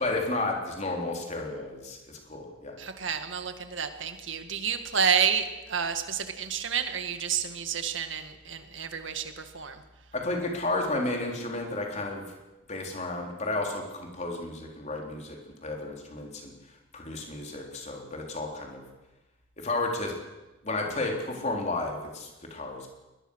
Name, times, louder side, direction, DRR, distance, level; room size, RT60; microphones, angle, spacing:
voice 1, 0.0-2.8 10.1-12.2 12.7-16.5 16.9-18.8 19.6-20.1 20.6-22.9, left 2 dB, 35° left, 1 dB, 3.9 m, -32 dB
voice 2, 2.8-9.8, right 7 dB, 70° right, 8 dB, 1.9 m, -30 dB
22.0 x 20.5 x 6.5 m, 1.1 s
head